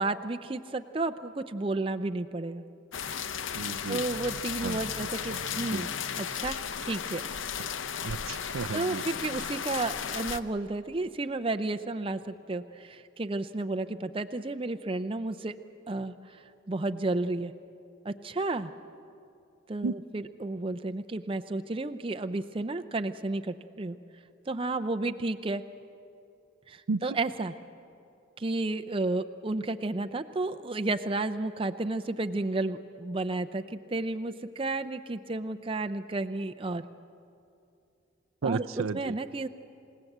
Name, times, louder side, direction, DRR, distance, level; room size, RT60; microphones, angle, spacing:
voice 1, 0.0-2.6 3.9-6.6 6.9-7.2 8.7-15.5 15.9-17.5 18.0-18.7 19.7-24.0 24.5-25.6 26.7-27.5 28.4-36.9 38.4-38.7 38.9-39.5, right 2 dB, 25° right, 7 dB, 0.5 m, -32 dB
sound 1, 2.9-10.4, left 7 dB, 65° left, 0.7 m, -35 dB
voice 2, 3.5-4.0 4.6-5.9 8.0-9.0 19.8-19.9 26.9-27.0 38.4-39.1, right 4 dB, 80° right, 12 dB, 0.5 m, -34 dB
27.5 x 17.5 x 8.0 m, 2.6 s
head